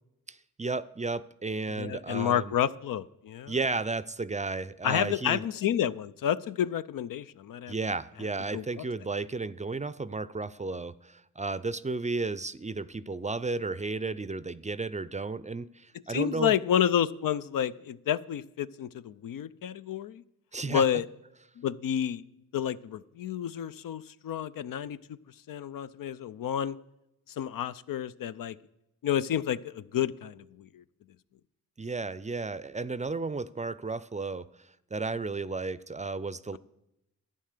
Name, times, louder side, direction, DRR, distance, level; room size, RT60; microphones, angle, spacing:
voice 1, 0.3-2.5 3.5-5.4 7.7-16.5 20.5-20.8 31.8-36.6, right 3 dB, 20° right, 17 dB, 0.5 m, -33 dB
voice 2, 1.8-3.5 4.8-7.7 8.5-8.8 16.1-20.2 20.7-21.1 21.6-22.2 22.5-25.0 25.5-26.8 27.4-28.6 29.0-30.8, left 9 dB, 65° left, 14 dB, 0.6 m, -30 dB
11.5 x 8.7 x 6.7 m, 0.88 s
supercardioid pair, 45°, 36 cm